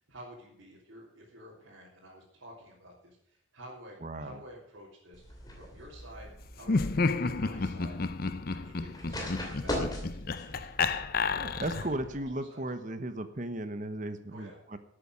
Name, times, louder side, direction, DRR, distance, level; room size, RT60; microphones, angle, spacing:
voice 1, 0.1-8.0 8.5-10.7 11.4-12.8 14.3-14.6, equal, 85° right, -6 dB, 3.5 m, -51 dB
sound 1, 5.1-12.3, left 1 dB, 20° left, 2.8 m, -41 dB
Laughter, 6.6-12.0, left 4 dB, 45° left, 0.6 m, -31 dB
voice 2, 11.4-14.8, right 1 dB, 40° right, 10 dB, 1.1 m, -36 dB
13.0 x 8.5 x 6.3 m, 0.71 s
head